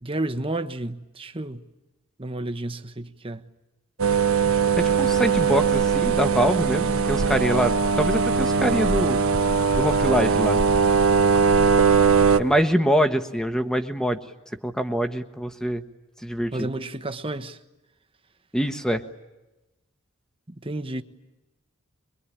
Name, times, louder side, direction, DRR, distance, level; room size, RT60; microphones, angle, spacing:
voice 1, 0.0-1.6 2.2-3.4 16.5-17.6 20.6-21.0, right 2 dB, 25° right, 1.2 m, -31 dB
sound 1, 4.0-12.4, right 5 dB, 75° right, 1.2 m, -20 dB
voice 2, 4.8-9.2 9.7-10.6 12.4-14.2 14.6-15.8 16.2-16.7 18.5-19.0, equal, 5° left, 1.4 m, -24 dB
24.0 x 23.0 x 10.0 m
head